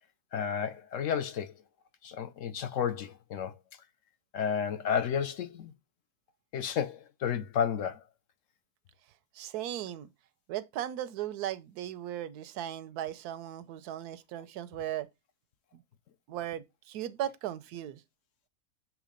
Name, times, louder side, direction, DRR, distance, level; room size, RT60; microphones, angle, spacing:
voice 1, 0.3-1.5 2.0-3.5 4.3-5.7 6.5-8.0, left 8 dB, 65° left, 0.9 m, -32 dB
voice 2, 9.3-10.1 10.5-15.1 15.7-15.8 16.3-18.0, right 12 dB, 90° right, 1.1 m, -37 dB
7.4 x 3.0 x 5.0 m
omnidirectional pair, 1.6 m